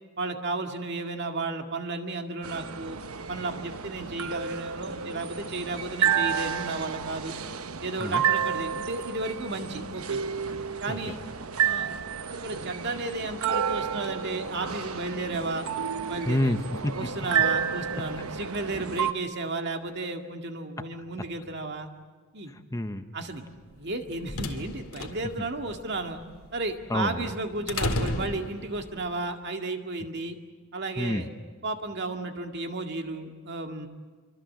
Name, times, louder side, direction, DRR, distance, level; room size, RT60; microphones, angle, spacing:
voice 1, 0.2-7.3 7.8-10.2 10.8-11.2 11.6-11.9 12.3-15.7 16.1-16.6 16.9-21.9 22.3-22.5 23.1-23.4 23.8-26.2 26.5-30.4 30.7-31.3 31.6-33.9, right 2 dB, 55° right, 4 dB, 2.1 m, -33 dB
sound 1, 2.4-19.1, right 7 dB, 85° right, 1.1 m, -31 dB
voice 2, 16.3-17.1 17.3-17.4 22.5-23.1 26.9-27.3 31.0-31.3, left 1 dB, 15° left, 8 dB, 0.9 m, -28 dB
sound 2, 23.8-29.0, left 2 dB, 85° left, 2.2 m, -34 dB
26.0 x 24.5 x 7.7 m, 1.5 s
head